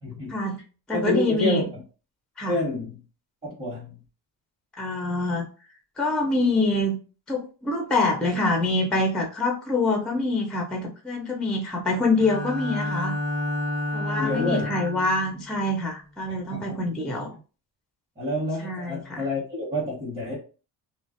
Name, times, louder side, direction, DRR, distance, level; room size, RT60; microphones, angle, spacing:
voice 1, 0.0-0.4 0.9-1.8 2.5-2.9 3.4-4.0 14.2-14.7 16.3-16.8 18.2-20.4, left 1 dB, 20° right, -6 dB, 1.2 m, -28 dB
voice 2, 0.9-1.6 2.4-2.6 4.8-5.5 6.0-6.9 7.3-13.1 13.9-17.3 18.6-19.2, left 2 dB, ahead, 1 dB, 0.4 m, -25 dB
Bowed string instrument, 12.2-15.2, left 1 dB, 80° right, 1.4 m, -29 dB
2.4 x 2.1 x 2.5 m, 0.35 s
cardioid pair, 85°, 44 cm